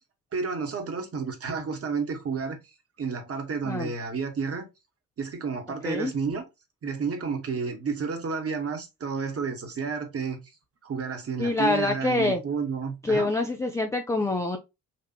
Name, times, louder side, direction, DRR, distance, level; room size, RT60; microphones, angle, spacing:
voice 1, 0.3-2.6 3.0-4.7 5.2-6.4 6.8-10.4 10.8-13.3, right 5 dB, 30° right, 1.2 m, -31 dB
voice 2, 11.4-12.4 13.0-14.6, left 2 dB, 5° left, 0.3 m, -25 dB
4.2 x 2.5 x 2.7 m
figure-of-eight pair, 50°, 47 cm